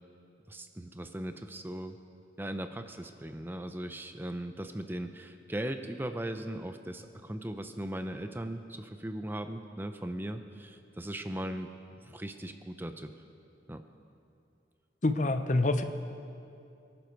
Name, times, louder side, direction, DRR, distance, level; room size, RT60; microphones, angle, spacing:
voice 1, 0.5-2.0 2.4-11.7 12.0-13.1 13.7-13.8, right 1 dB, 10° right, 8 dB, 0.5 m, -38 dB
voice 2, 15.0-15.8, left 2 dB, 45° left, 9 dB, 0.7 m, -26 dB
24.0 x 11.5 x 4.6 m, 2.5 s
head